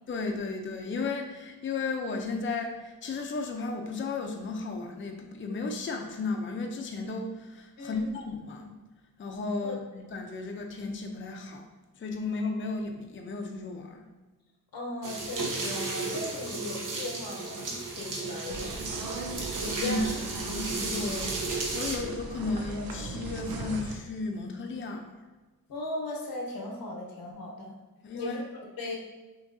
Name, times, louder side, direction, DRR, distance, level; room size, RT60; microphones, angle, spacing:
voice 1, 0.1-8.8 9.2-11.7 11.9-14.0 19.8-20.0 20.4-21.4 21.7-25.1 28.0-28.4, left 3 dB, 35° left, 3 dB, 0.5 m, -34 dB
voice 2, 7.8-8.1 9.6-9.8 14.7-18.9 19.5-20.1 25.7-27.7 28.1-29.0, left 1 dB, 85° left, -1 dB, 0.9 m, -37 dB
sound 1, 15.0-22.0, right 3 dB, 60° right, 0.9 m, -34 dB
sound 2, 18.5-24.0, right 2 dB, 90° right, 0.6 m, -38 dB
6.1 x 2.9 x 2.6 m, 1.2 s
wide cardioid pair, 105°, 35 cm